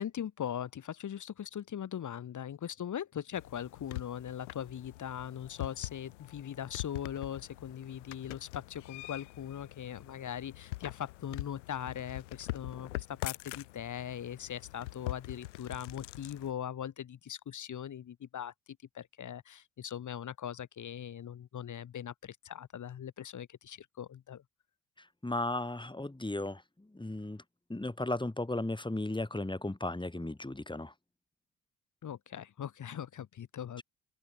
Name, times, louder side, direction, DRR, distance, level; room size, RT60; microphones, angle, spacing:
voice 1, 0.0-24.4 32.0-33.8, left 9 dB, 55° left, 4.8 m, -40 dB
sound 1, 3.3-16.5, left 19 dB, 80° left, 1.4 m, -44 dB
voice 2, 25.0-27.4 27.7-30.9, left 2 dB, 15° left, 7.2 m, -35 dB
open air
hypercardioid pair, 45°, 36 cm